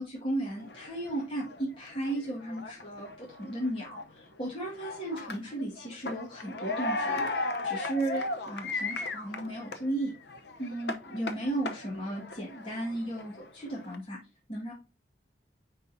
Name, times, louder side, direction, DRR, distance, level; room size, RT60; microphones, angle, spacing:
voice 1, 0.0-10.1 10.6-14.2 14.5-14.7, right 1 dB, 30° left, -4 dB, 1.8 m, -35 dB
sound 1, 0.6-9.9 10.2-14.0, left 2 dB, 65° left, 0.8 m, -36 dB
9.4 x 4.0 x 2.7 m, 0.29 s
head